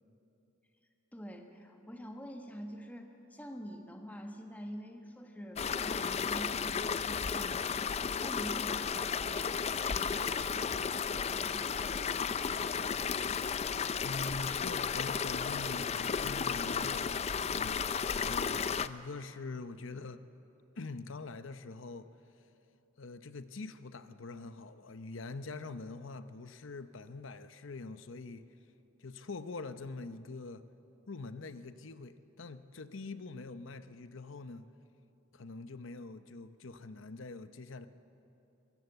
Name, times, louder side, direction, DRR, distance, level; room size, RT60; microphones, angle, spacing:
voice 1, 1.1-13.3, equal, 10° left, 4 dB, 1.3 m, -47 dB
sound 1, 5.6-18.9, left 6 dB, 30° left, 0.4 m, -33 dB
voice 2, 14.0-20.2 20.8-22.1 23.0-28.5 29.0-30.7 31.1-34.7 35.3-37.9, left 3 dB, 65° left, 12 dB, 0.8 m, -44 dB
22.5 x 16.5 x 7.9 m, 3.0 s
head